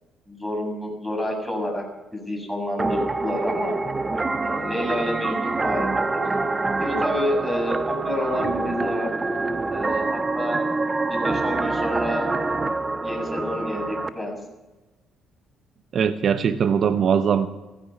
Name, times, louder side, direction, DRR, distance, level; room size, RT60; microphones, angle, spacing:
voice 1, 0.3-1.8 2.1-3.8 4.3-6.2 6.8-9.1 9.7-10.6 11.1-12.3 13.0-14.4, left 1 dB, ahead, 3 dB, 7.5 m, -29 dB
sound 1, 2.8-14.1, right 3 dB, 30° right, 1.2 m, -26 dB
voice 2, 15.9-17.5, right 7 dB, 55° right, 11 dB, 0.9 m, -21 dB
15.5 x 15.0 x 5.8 m, 1.1 s
hypercardioid pair, 55°, 0 cm